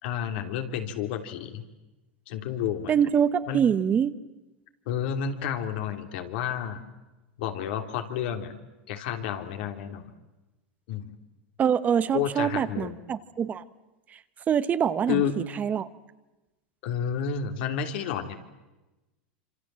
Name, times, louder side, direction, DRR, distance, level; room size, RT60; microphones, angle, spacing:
voice 1, 0.0-1.6 2.3-3.0 3.5-3.6 4.9-6.8 7.4-8.6 8.9-10.1 10.9-11.1 12.1-13.0 15.1-15.3 16.8-18.4, left 8 dB, 70° left, 6 dB, 3.1 m, -30 dB
voice 2, 2.9-4.1 11.6-13.6 14.5-15.2 15.6-15.9, right 8 dB, 30° right, 14 dB, 1.1 m, -24 dB
26.5 x 26.0 x 7.6 m, 1.0 s
supercardioid pair, 120°, 6 cm